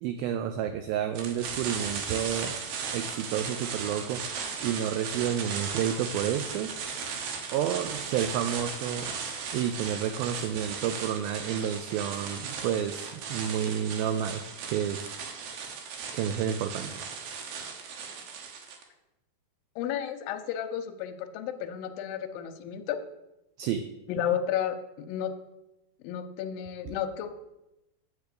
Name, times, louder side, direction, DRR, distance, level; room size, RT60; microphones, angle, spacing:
voice 1, 0.0-2.6 2.9-4.2 4.6-6.7 7.5-9.1 9.5-15.1 16.1-17.0 23.6-23.9, right 9 dB, 85° right, 8 dB, 2.1 m, -30 dB
sound 1, 1.1-18.8, right 6 dB, 70° right, 2.9 m, -37 dB
voice 2, 19.8-23.0 24.1-25.3 26.0-27.3, left 9 dB, 80° left, 7 dB, 2.1 m, -32 dB
8.1 x 6.0 x 6.7 m, 0.92 s
omnidirectional pair, 4.8 m